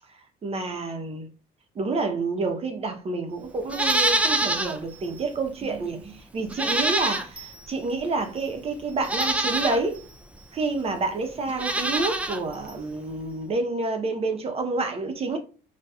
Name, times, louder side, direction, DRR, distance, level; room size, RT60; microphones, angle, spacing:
voice 1, 0.4-1.3 1.8-10.0 10.5-15.4, right 3 dB, 35° right, 0.8 m, -28 dB
Livestock farm animals working animals, 3.7-4.8 5.2-5.3 6.5-7.5 8.4-8.5 9.0-9.8 11.5-12.4 12.7-12.8, right 2 dB, 10° right, 0.4 m, -25 dB
4.1 x 2.3 x 2.3 m
cardioid pair, 110°, 17 cm